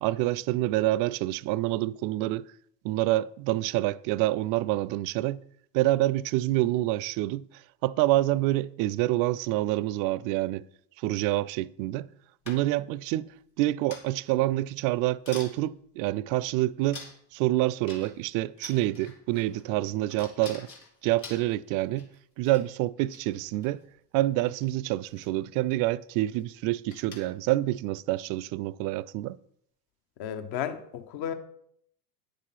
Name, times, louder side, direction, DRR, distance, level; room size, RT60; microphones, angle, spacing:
voice 1, 0.0-2.5 2.8-5.4 5.7-7.5 7.8-10.6 11.0-12.1 12.5-13.3 13.6-17.0 17.3-20.7 21.0-22.1 22.4-23.8 24.1-29.4, right 16 dB, 45° right, 0.5 m, -27 dB
sound 1, 12.5-12.9 13.9-14.3 14.8-14.9 15.3-15.6 16.3-16.4 16.9-17.4 17.9-18.3 18.6-19.6 20.1-22.2 22.5-22.7 23.0-23.7 24.5-24.7 25.0-25.3 25.7-25.9 26.2-26.4 26.9-27.4, left 4 dB, 85° left, 2.2 m, -46 dB
voice 2, 30.2-31.3, left 9 dB, 50° left, 1.2 m, -33 dB
9.4 x 6.8 x 5.8 m
hypercardioid pair, 75°, 49 cm